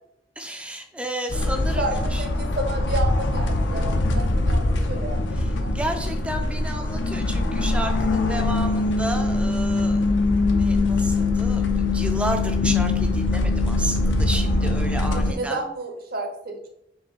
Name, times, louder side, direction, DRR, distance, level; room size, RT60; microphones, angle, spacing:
voice 1, 0.4-2.2 5.7-15.6, right 1 dB, 5° right, 5 dB, 0.3 m, -32 dB
sound 1, 1.3-15.3, left 2 dB, 75° left, 0.5 m, -22 dB
voice 2, 1.8-5.7 14.6-15.0 15.3-16.7, right 2 dB, 55° right, 3 dB, 0.8 m, -31 dB
5.2 x 2.6 x 2.8 m, 0.78 s
head